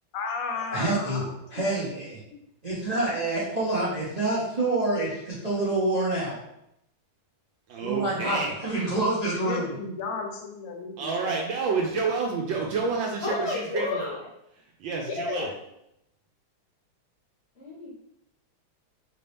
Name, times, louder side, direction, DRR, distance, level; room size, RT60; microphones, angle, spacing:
voice 1, 0.1-1.3 2.3-2.4 9.3-11.4, left 4 dB, 65° left, 2 dB, 0.8 m, -34 dB
voice 2, 0.7-1.2 1.5-2.2 2.6-6.4 7.8-9.7, right 2 dB, 55° right, -7 dB, 0.4 m, -27 dB
voice 3, 7.7-9.0 11.0-13.9 14.8-15.5, right 4 dB, 70° right, 0 dB, 1.3 m, -29 dB
voice 4, 13.2-14.3 15.1-15.5 17.6-17.9, left 3 dB, 40° left, -4 dB, 1.0 m, -31 dB
5.1 x 2.8 x 3.3 m, 0.80 s
omnidirectional pair, 2.3 m